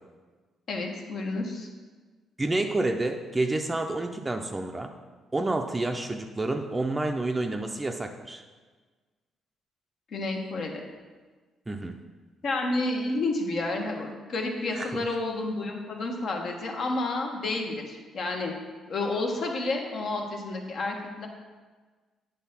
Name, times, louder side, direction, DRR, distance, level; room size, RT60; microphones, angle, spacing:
voice 1, 0.7-1.7 10.1-10.8 12.4-18.5 18.9-21.3, left 2 dB, 60° left, 1 dB, 1.2 m, -30 dB
voice 2, 2.4-4.9 5.3-8.4 11.7-12.0 14.7-14.9, right 2 dB, 20° right, 4 dB, 0.5 m, -29 dB
9.2 x 3.3 x 5.8 m, 1.4 s
cardioid pair, 90°, 0 cm